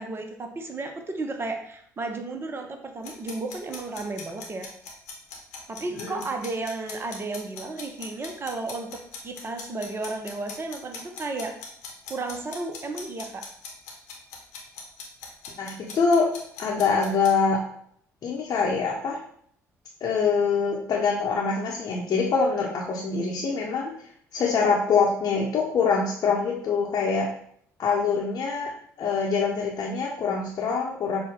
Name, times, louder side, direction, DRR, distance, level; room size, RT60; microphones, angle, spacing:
voice 1, 0.0-4.7 5.7-11.5 12.1-13.4, right 3 dB, 25° right, 4 dB, 0.7 m, -33 dB
sound 1, 3.0-17.3, left 5 dB, 70° left, 0.9 m, -40 dB
voice 2, 15.6-16.3 16.6-17.6 18.2-19.2 20.0-23.9 24.3-27.3 27.8-28.7 29.0-31.2, left 5 dB, 45° left, -3 dB, 0.8 m, -24 dB
6.5 x 2.2 x 3.7 m, 0.64 s
figure-of-eight pair, 50°, 9 cm